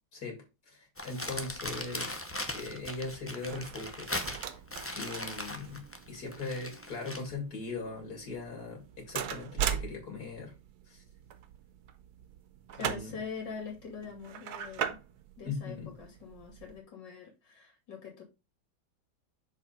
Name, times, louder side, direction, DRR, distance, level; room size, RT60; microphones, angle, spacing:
voice 1, 0.7-2.2 2.5-4.1 5.0-10.5 10.9-11.0 12.8-13.2 15.4-15.9, left 3 dB, 60° left, 2 dB, 2.9 m, -39 dB
Crumpling crinkling, 1.0-7.3, left 1 dB, 15° left, 0.4 m, -39 dB
sound 1, 1.3-16.8, right 9 dB, 65° right, 1.2 m, -41 dB
voice 2, 12.8-15.0 15.4-18.2, left 6 dB, 85° left, 0 dB, 3.3 m, -43 dB
6.6 x 4.9 x 4.2 m, 0.26 s
omnidirectional pair, 1.9 m